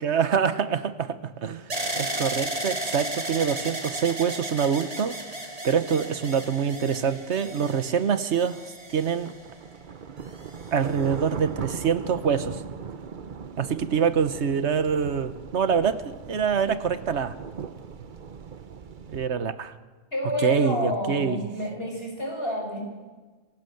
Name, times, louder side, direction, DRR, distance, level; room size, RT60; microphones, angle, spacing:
voice 1, 0.0-1.7 2.0-5.2 5.6-8.6 8.9-9.3 10.7-12.6 13.6-17.3 19.1-19.7 20.4-21.4, right 7 dB, 85° right, 13 dB, 1.4 m, -25 dB
sound 1, 1.7-9.7 10.4-11.1, right 1 dB, 35° right, 3.1 m, -34 dB
sound 2, 9.0-19.3, right 6 dB, 50° right, 1.0 m, -39 dB
voice 2, 20.1-22.8, left 1 dB, 60° left, 0 dB, 7.0 m, -29 dB
25.5 x 17.0 x 7.9 m, 1.3 s
omnidirectional pair, 1.1 m